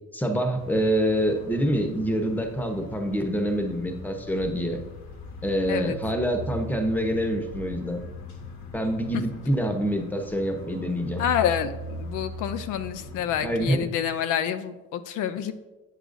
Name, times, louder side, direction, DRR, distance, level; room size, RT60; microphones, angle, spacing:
voice 1, 0.1-4.8 5.4-8.0 8.7-11.2 13.4-13.8, equal, 5° left, 5 dB, 0.8 m, -26 dB
sound 1, 0.6-13.8, left 2 dB, 70° left, 1.2 m, -40 dB
voice 2, 11.2-15.5, left 9 dB, 85° left, 10 dB, 0.5 m, -28 dB
7.7 x 6.5 x 2.6 m, 1.1 s
cardioid pair, 90°, 30 cm